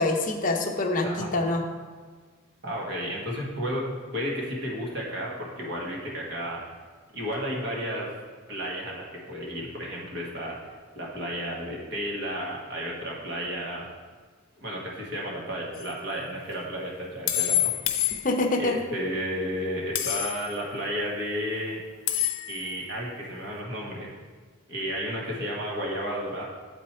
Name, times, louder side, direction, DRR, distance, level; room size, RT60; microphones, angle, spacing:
voice 1, 0.0-1.6 18.2-18.8, left 2 dB, 40° left, 2 dB, 0.7 m, -25 dB
voice 2, 1.0-1.4 2.6-3.9 4.1-6.6 7.1-8.1 8.5-13.9 14.6-18.2 18.6-21.8 22.5-24.1 24.7-26.4, equal, 55° right, -3 dB, 1.5 m, -32 dB
sound 1, 15.7-15.9 17.3-18.7 19.9-20.6 22.1-22.7, left 13 dB, 75° left, 0.6 m, -27 dB
7.5 x 4.6 x 4.3 m, 1.5 s
head